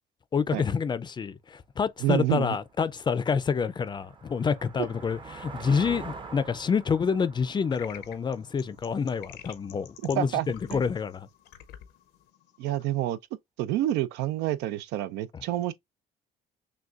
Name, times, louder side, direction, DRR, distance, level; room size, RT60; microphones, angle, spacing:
voice 1, 0.3-11.3 15.3-15.4, left 6 dB, 25° left, 0.4 m, -28 dB
voice 2, 2.0-2.6 10.2-10.8 12.6-13.2 13.6-15.7, right 13 dB, 85° right, 0.5 m, -28 dB
sound 1, 2.7-9.3, right 4 dB, 30° right, 0.7 m, -45 dB
sound 2, 7.7-13.0, left 11 dB, 80° left, 0.7 m, -49 dB
6.2 x 2.2 x 2.4 m
cardioid pair, 110°, 17 cm